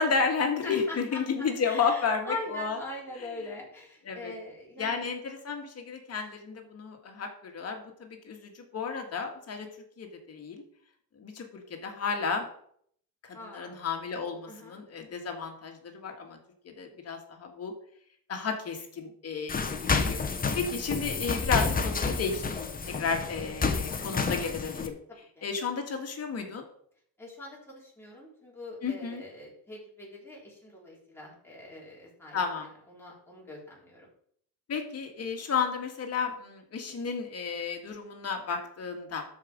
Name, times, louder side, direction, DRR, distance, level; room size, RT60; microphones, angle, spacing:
voice 1, 0.0-2.8 4.1-4.3 4.8-9.7 10.0-10.6 11.2-12.5 13.2-16.4 16.6-17.7 18.3-25.0 25.4-26.6 28.8-29.2 32.3-32.7 34.7-39.2, left 5 dB, 40° left, 3 dB, 2.0 m, -32 dB
voice 2, 0.6-1.2 1.6-5.0 13.3-13.8 14.5-14.8 25.4-25.5 27.2-34.1, left 1 dB, 5° left, -5 dB, 4.0 m, -43 dB
sound 1, 19.5-24.9, left 4 dB, 25° left, 0.9 m, -30 dB
12.5 x 5.1 x 5.2 m, 0.65 s
cardioid pair, 140°, 37 cm